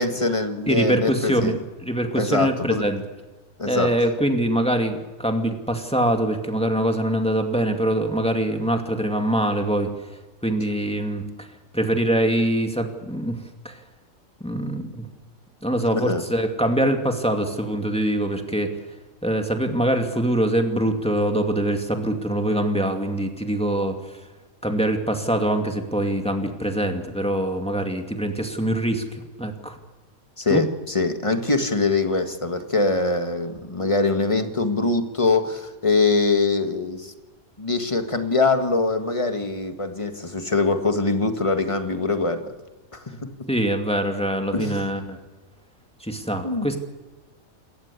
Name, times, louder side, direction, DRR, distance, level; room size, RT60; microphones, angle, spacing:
voice 1, 0.0-1.6 2.2-2.8 3.6-3.9 15.9-16.2 30.4-37.1 37.6-42.5 42.9-43.0 44.5-44.9 46.4-46.7, left 3 dB, 20° left, 7 dB, 1.8 m, -23 dB
voice 2, 0.7-3.0 3.6-9.9 10.4-11.3 11.7-13.4 13.6-13.8 14.4-15.1 15.6-18.7 19.2-23.9 24.6-29.8 30.5-30.6 43.5-45.2 46.0-46.8, right 1 dB, 5° left, 4 dB, 2.3 m, -23 dB
28.0 x 14.0 x 8.3 m, 1.2 s
omnidirectional pair, 1.5 m